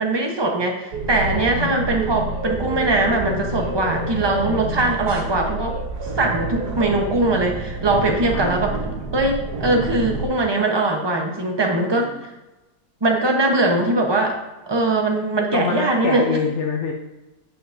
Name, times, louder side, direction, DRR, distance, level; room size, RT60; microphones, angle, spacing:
voice 1, 0.0-5.8 6.1-8.7 9.1-12.1 13.0-14.4 14.7-16.4, right 2 dB, 20° right, 2 dB, 0.7 m, -21 dB
sound 1, 0.9-10.2, right 2 dB, 70° right, 1.6 m, -28 dB
voice 2, 11.7-12.2 15.5-16.9, left 6 dB, 60° left, 1 dB, 0.8 m, -26 dB
9.0 x 7.2 x 2.6 m, 1.0 s
omnidirectional pair, 1.8 m